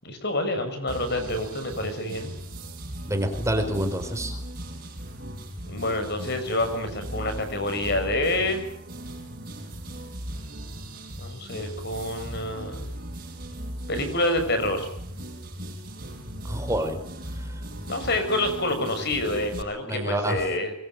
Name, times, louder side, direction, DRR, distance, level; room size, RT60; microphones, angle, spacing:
voice 1, 0.0-2.3 5.7-8.6 11.2-12.9 13.9-14.9 17.9-20.7, left 1 dB, 55° left, 8 dB, 6.7 m, -27 dB
sound 1, 0.9-19.6, right 1 dB, 45° right, 7.7 m, -38 dB
voice 2, 3.1-4.4 16.4-17.0 19.8-20.4, right 1 dB, 15° right, 6 dB, 4.3 m, -27 dB
24.0 x 23.0 x 9.4 m, 0.69 s
head